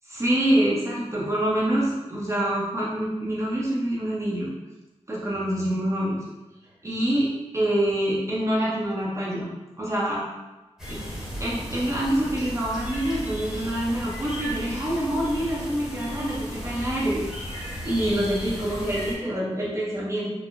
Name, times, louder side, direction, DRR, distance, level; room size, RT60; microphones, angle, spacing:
voice 1, 0.1-4.5 5.1-6.2 6.8-9.5 9.8-10.2 10.9-11.0 11.4-17.2 17.8-20.3, right 1 dB, 25° right, -6 dB, 0.7 m, -26 dB
sound 1, 10.8-19.1, equal, 5° right, 1.0 m, -35 dB
4.4 x 2.0 x 2.5 m, 1.1 s
wide cardioid pair, 125°, 12 cm